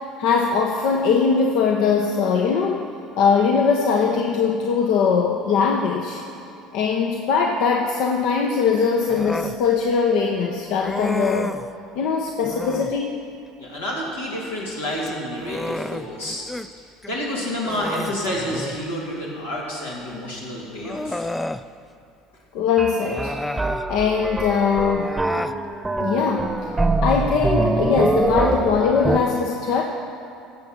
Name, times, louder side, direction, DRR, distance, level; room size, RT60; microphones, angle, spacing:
voice 1, 0.2-2.8 3.2-6.2 6.7-11.5 12.0-13.2 22.5-23.3 23.9-25.1 26.0-26.5 27.0-29.8, left 5 dB, 65° left, 1 dB, 0.8 m, -21 dB
Human voice, 9.1-9.6 10.8-11.7 12.4-13.0 14.9-16.7 17.0-17.2 17.6-18.9 20.1-20.2 20.8-21.7 23.0-23.9 24.9-25.6, left 1 dB, 10° left, 0.4 m, -31 dB
voice 2, 13.6-16.4 16.8-21.3, equal, 90° left, -6 dB, 2.8 m, -29 dB
sound 1, 22.8-29.2, right 2 dB, 15° right, 0.9 m, -24 dB
16.0 x 7.0 x 5.8 m, 2.5 s
hypercardioid pair, 65°, 0 cm